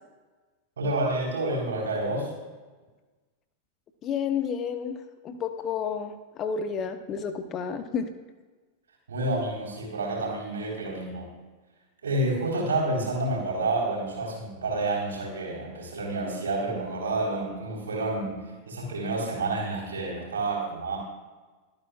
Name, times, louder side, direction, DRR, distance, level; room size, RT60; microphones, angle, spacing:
voice 1, 0.8-2.3 9.1-11.3 12.0-21.0, right 2 dB, 70° right, -3 dB, 4.1 m, -29 dB
voice 2, 4.0-5.0 5.2-8.1, left 6 dB, 30° left, 9 dB, 0.9 m, -30 dB
23.5 x 8.8 x 2.4 m, 1.3 s
figure-of-eight pair, 90°, 0 cm